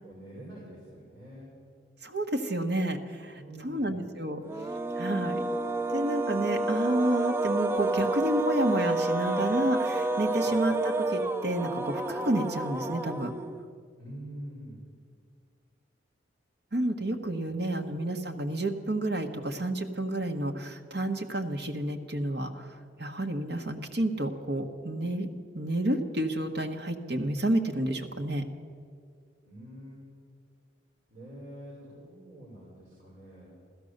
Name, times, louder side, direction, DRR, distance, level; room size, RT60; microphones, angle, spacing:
voice 1, 0.0-1.5 3.3-4.0 10.4-10.6 14.0-14.8 29.4-30.1 31.1-33.5, right 1 dB, 40° right, -7 dB, 5.2 m, -46 dB
voice 2, 2.0-4.4 4.9-5.4 5.9-13.3 16.7-25.3 25.5-28.4, right 1 dB, 55° right, 4 dB, 1.3 m, -30 dB
sound 1, 4.4-13.8, right 2 dB, 15° right, 0.4 m, -29 dB
15.5 x 13.5 x 6.6 m, 2.2 s
head